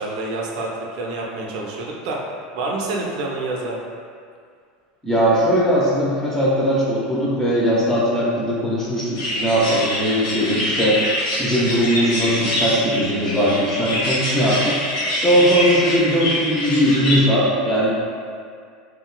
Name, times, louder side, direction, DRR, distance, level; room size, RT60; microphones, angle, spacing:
voice 1, 0.0-2.2 2.5-3.8, right 2 dB, 75° right, -1 dB, 0.5 m, -27 dB
voice 2, 5.0-11.0 11.4-14.8 15.1-17.9, equal, 10° left, -7 dB, 0.8 m, -19 dB
sound 1, 9.1-17.2, left 1 dB, 80° left, 1.0 m, -25 dB
3.0 x 2.9 x 2.3 m, 2.1 s
supercardioid pair, 125°, 4 cm